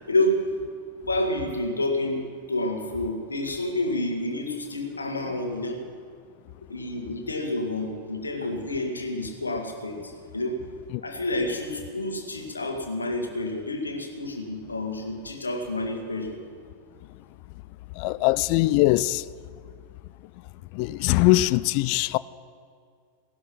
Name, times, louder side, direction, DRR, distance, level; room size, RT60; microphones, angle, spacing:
voice 1, 0.1-0.4 1.1-5.8 6.7-10.6 11.0-16.4 18.2-18.3, left 1 dB, 75° left, 1.9 m, -29 dB
voice 2, 18.0-19.2 20.7-22.2, left 18 dB, 45° left, 0.4 m, -21 dB
17.5 x 11.5 x 6.0 m
figure-of-eight pair, 90°, 0 cm